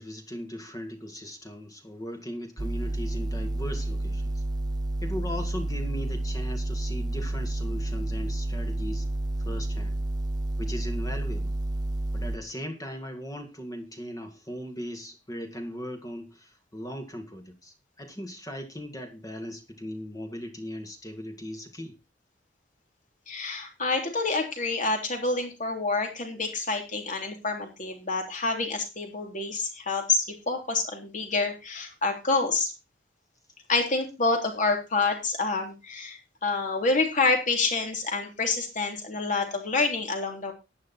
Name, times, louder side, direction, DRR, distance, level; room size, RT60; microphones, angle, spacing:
voice 1, 0.0-4.4 5.0-9.1 9.4-10.0 10.6-11.5 12.1-22.0, equal, 20° left, 2.0 m, -38 dB
sound 1, 2.6-12.4, right 1 dB, 20° right, 0.5 m, -30 dB
voice 2, 23.3-32.7 33.7-40.5, left 3 dB, 45° left, 3.2 m, -27 dB
11.0 x 10.0 x 4.2 m
head